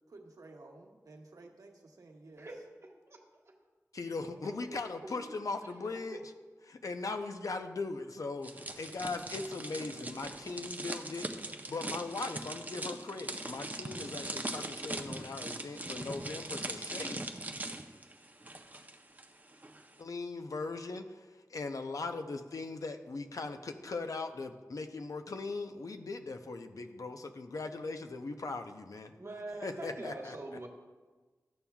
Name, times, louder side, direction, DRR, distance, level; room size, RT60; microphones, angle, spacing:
voice 1, 0.1-2.6, right 2 dB, 80° right, 1 dB, 1.0 m, -53 dB
voice 2, 3.9-6.2 6.7-17.4 20.0-29.1 29.6-30.4, left 3 dB, 70° left, 7 dB, 0.6 m, -39 dB
sound 1, 8.4-19.2 19.5-19.8, right 2 dB, 30° right, 0.6 m, -41 dB
voice 3, 29.1-30.7, right 2 dB, 50° right, 0 dB, 1.3 m, -42 dB
13.0 x 7.1 x 2.3 m, 1.3 s
wide cardioid pair, 85°, 6 cm